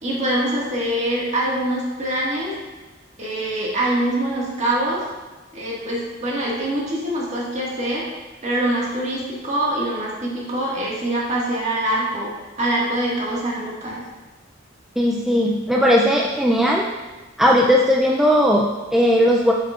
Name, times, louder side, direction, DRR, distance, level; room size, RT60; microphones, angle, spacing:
voice 1, 0.0-2.5 3.2-5.0 5.5-8.1 8.4-14.0 16.6-16.7, right 1 dB, 35° right, -5 dB, 1.7 m, -24 dB
voice 2, 15.0-16.9 17.4-19.5, equal, ahead, -2 dB, 0.3 m, -17 dB
7.9 x 5.6 x 2.4 m, 1.2 s
head